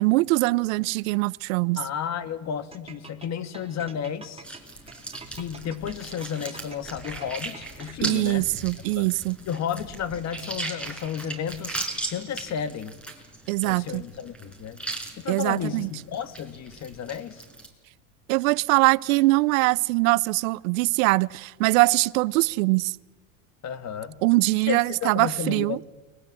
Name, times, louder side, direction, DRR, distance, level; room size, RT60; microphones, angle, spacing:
voice 1, 0.0-1.8 8.0-9.4 13.5-14.0 15.3-15.9 18.3-22.9 24.2-25.8, right 23 dB, 75° right, 0.7 m, -22 dB
voice 2, 1.8-4.4 5.3-8.5 8.9-9.1 9.4-13.0 13.6-14.8 15.2-17.4 23.6-24.2 24.7-25.8, left 8 dB, 40° left, 1.8 m, -32 dB
sound 1, 2.7-8.2, right 4 dB, 15° right, 2.5 m, -46 dB
sound 2, 4.4-17.7, right 2 dB, 5° left, 5.5 m, -38 dB
30.0 x 22.0 x 7.6 m
supercardioid pair, 105°, 41 cm